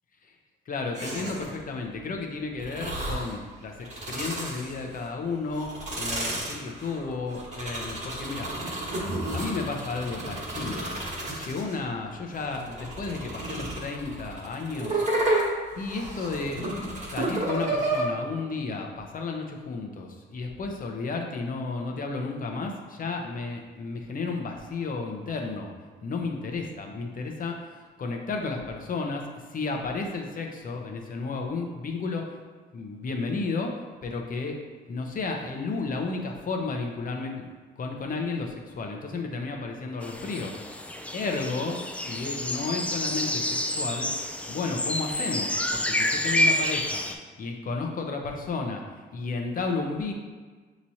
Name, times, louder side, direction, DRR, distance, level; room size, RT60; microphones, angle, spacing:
voice 1, 0.7-8.5 9.3-10.9 11.3-15.0 15.8-16.6 17.1-25.7 26.0-29.2 29.5-32.3 32.7-33.7 34.0-34.6 34.9-40.5 41.1-44.1 44.5-47.0 47.4-48.8 49.1-50.1, left 4 dB, 45° left, 2 dB, 0.7 m, -32 dB
sound 1, 0.9-1.6 2.6-3.4 3.8-5.1 5.5-11.8 12.3-18.0, right 2 dB, 35° right, 1.3 m, -31 dB
sound 2, 40.0-47.1, left 1 dB, 5° left, 0.3 m, -29 dB
5.9 x 3.0 x 2.7 m, 1.4 s
cardioid pair, 90°, 20 cm